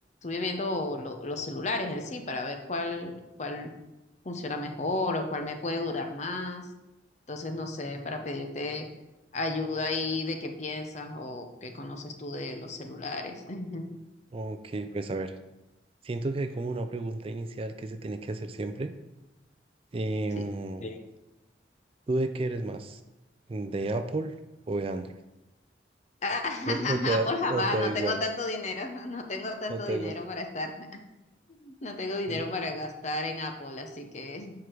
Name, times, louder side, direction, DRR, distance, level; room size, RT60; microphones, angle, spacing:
voice 1, 0.2-3.1 3.4-3.7 4.2-6.7 7.3-8.9 9.3-13.9 20.4-20.5 20.8-21.0 26.2-31.0 31.5-34.5, left 2 dB, 40° left, 5 dB, 0.8 m, -33 dB
voice 2, 14.3-15.4 16.0-18.9 19.9-20.8 22.1-23.0 23.5-24.3 24.7-25.1 26.7-28.2 29.7-30.1 32.3-32.4, right 2 dB, 30° right, 8 dB, 0.3 m, -31 dB
7.9 x 4.8 x 4.6 m, 1.0 s
head